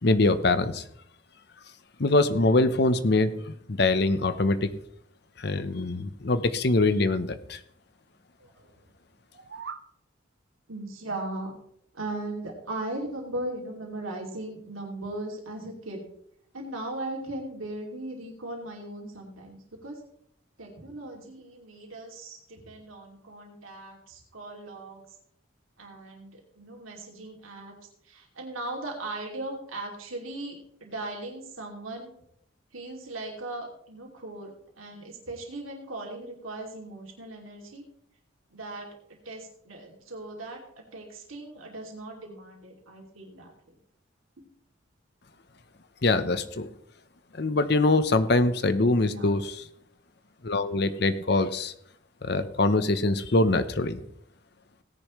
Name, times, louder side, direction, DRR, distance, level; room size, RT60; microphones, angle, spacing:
voice 1, 0.0-0.8 2.0-4.7 5.4-7.6 46.0-46.7 47.3-49.4 50.4-51.7 52.2-54.0, left 2 dB, 50° left, 10 dB, 0.8 m, -23 dB
voice 2, 8.4-8.7 10.7-11.5 11.9-16.0 16.5-20.0 20.6-25.0 25.8-27.8 28.0-32.1 32.7-37.8 38.5-43.7 49.0-49.3, right 2 dB, 90° right, 0 dB, 2.6 m, -38 dB
sound 1, 9.2-9.9, right 5 dB, 55° right, 0.6 m, -41 dB
17.0 x 10.0 x 3.1 m, 0.71 s
head